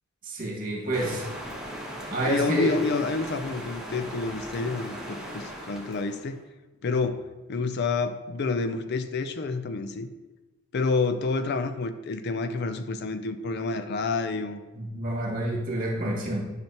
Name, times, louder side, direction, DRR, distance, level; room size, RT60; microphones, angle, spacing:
voice 1, 0.2-1.3 2.1-2.7 14.8-16.4, right 1 dB, 45° right, -2 dB, 1.9 m, -28 dB
sound 1, 0.9-6.4, equal, 5° right, 1.2 m, -38 dB
voice 2, 2.3-6.4 6.8-10.1 10.7-14.6, left 3 dB, 55° left, 10 dB, 0.4 m, -28 dB
10.5 x 5.8 x 2.9 m, 1.1 s
head